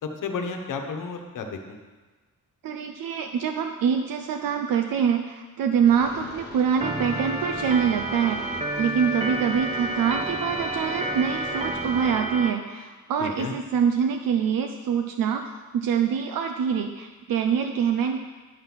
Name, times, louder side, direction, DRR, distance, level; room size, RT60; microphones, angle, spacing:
voice 1, 0.0-1.8 13.2-13.5, left 4 dB, 70° left, 4 dB, 1.2 m, -32 dB
voice 2, 2.6-15.4 15.7-18.2, right 7 dB, 80° right, 5 dB, 0.7 m, -25 dB
sound 1, 5.8-12.1, left 2 dB, 30° left, 1.2 m, -42 dB
Organ, 6.8-12.5, right 1 dB, 20° right, 0.6 m, -30 dB
10.5 x 5.6 x 6.2 m, 1.3 s
wide cardioid pair, 175°, 33 cm